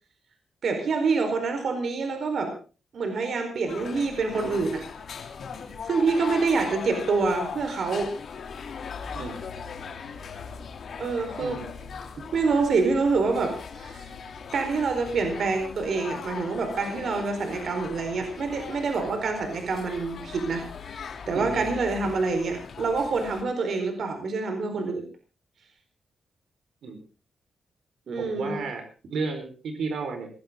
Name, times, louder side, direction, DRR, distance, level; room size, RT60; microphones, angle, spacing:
voice 1, 0.6-2.5 2.9-4.8 5.8-8.1 11.0-11.6 12.3-14.1 14.5-20.6 21.3-25.0 28.1-28.6, right 4 dB, 60° right, 6 dB, 4.4 m, -26 dB
sound 1, 3.7-23.4, left 6 dB, 60° left, 3.1 m, -39 dB
voice 2, 11.4-11.8 21.3-21.7 26.8-27.0 28.2-30.3, right 4 dB, 80° right, 5 dB, 4.7 m, -33 dB
21.0 x 16.0 x 3.8 m, 0.34 s
wide cardioid pair, 120°, 0 cm